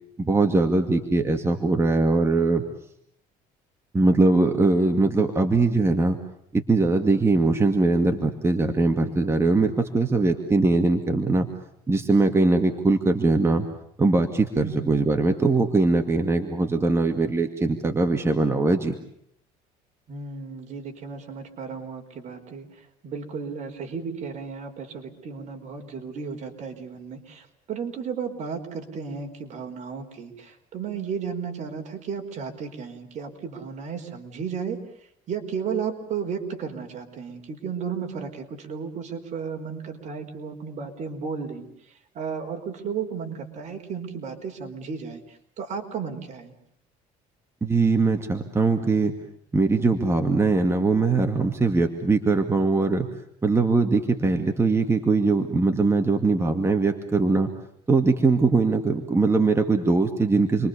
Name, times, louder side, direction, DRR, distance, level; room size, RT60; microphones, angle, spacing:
voice 1, 0.2-2.6 3.9-6.2 6.5-11.5 11.9-13.7 14.0-19.0 47.6-49.1 49.5-53.1 53.4-57.5 57.9-60.7, right 3 dB, 15° right, 5 dB, 2.3 m, -21 dB
voice 2, 14.6-15.0 20.1-34.8 35.3-46.5, right 6 dB, 50° right, 5 dB, 4.9 m, -34 dB
29.5 x 23.5 x 7.0 m, 0.71 s
cardioid pair, 120°, 16 cm